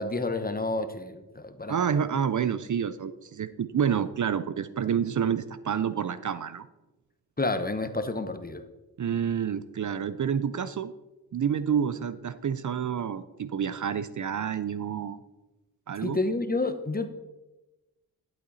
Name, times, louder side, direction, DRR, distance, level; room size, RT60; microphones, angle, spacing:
voice 1, 0.0-1.8 7.4-8.6 16.0-17.1, left 2 dB, 25° left, 9 dB, 1.0 m, -29 dB
voice 2, 1.7-6.7 9.0-10.9 11.3-15.2 15.9-16.2, right 8 dB, 50° right, 14 dB, 0.6 m, -28 dB
11.5 x 8.3 x 4.1 m, 1.1 s
cardioid pair, 65°, 39 cm